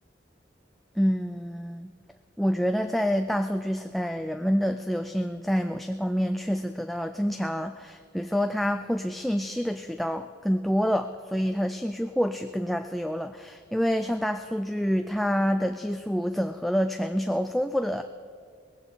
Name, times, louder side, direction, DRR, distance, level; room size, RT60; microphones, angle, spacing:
voice 1, 1.0-1.9 2.4-18.0, equal, ahead, 7 dB, 0.3 m, -27 dB
19.5 x 15.0 x 4.0 m, 2.2 s
head